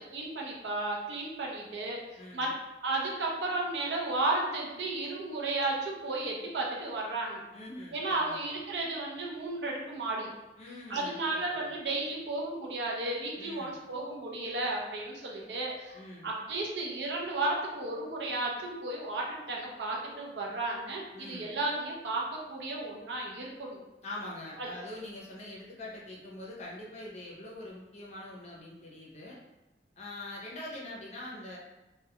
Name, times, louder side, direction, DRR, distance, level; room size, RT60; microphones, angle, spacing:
voice 1, 0.0-2.0 2.3-2.5 2.8-7.4 7.9-10.3 10.9-23.8 24.6-24.7, right 2 dB, 70° right, -2 dB, 0.5 m, -33 dB
voice 2, 2.2-2.5 7.5-8.5 10.6-11.7 13.3-13.8 15.9-16.3 21.1-21.6 24.0-29.4 30.0-31.6, left 1 dB, 40° left, -4 dB, 0.6 m, -44 dB
2.3 x 2.2 x 2.8 m, 1.0 s
head